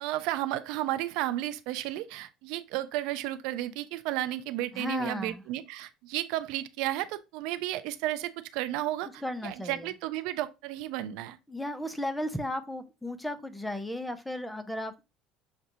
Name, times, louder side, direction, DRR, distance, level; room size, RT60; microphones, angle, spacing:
voice 1, 0.0-11.4, right 14 dB, 75° right, 0.4 m, -33 dB
voice 2, 4.7-5.4 9.2-9.9 11.5-15.0, left 1 dB, 5° left, 0.5 m, -35 dB
6.4 x 2.3 x 2.7 m
cardioid pair, 125°, 0 cm